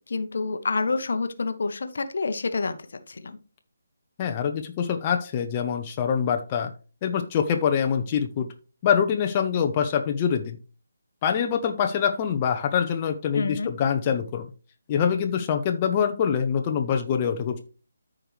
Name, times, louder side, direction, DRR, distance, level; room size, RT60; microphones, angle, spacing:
voice 1, 0.1-2.8 3.1-3.4 13.3-13.7, left 4 dB, 55° left, 10 dB, 1.0 m, -28 dB
voice 2, 4.2-6.7 7.0-8.5 8.8-10.6 11.2-14.5 14.9-17.6, left 7 dB, 25° left, 4 dB, 0.8 m, -24 dB
13.5 x 5.0 x 3.2 m, 0.35 s
figure-of-eight pair, 145°, 0 cm